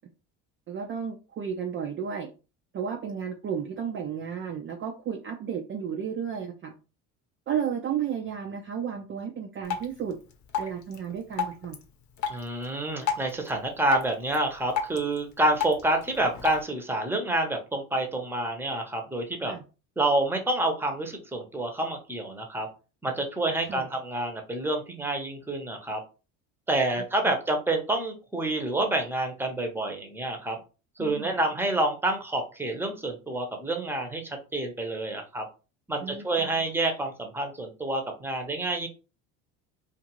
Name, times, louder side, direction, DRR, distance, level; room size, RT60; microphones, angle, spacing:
voice 1, 0.7-2.3 2.7-6.7 7.5-10.2 10.6-11.8 19.5-19.6 23.6-23.8 31.0-31.4 36.0-36.5, right 7 dB, 35° right, 3 dB, 0.4 m, -33 dB
Drip, 9.6-16.6, left 7 dB, 50° left, 0.8 m, -35 dB
voice 2, 12.3-19.5 20.0-22.7 23.0-26.0 26.7-30.6 31.0-35.4 35.9-38.9, right 2 dB, 5° right, 3 dB, 0.8 m, -28 dB
2.5 x 2.5 x 3.0 m, 0.32 s
supercardioid pair, 90°, 36 cm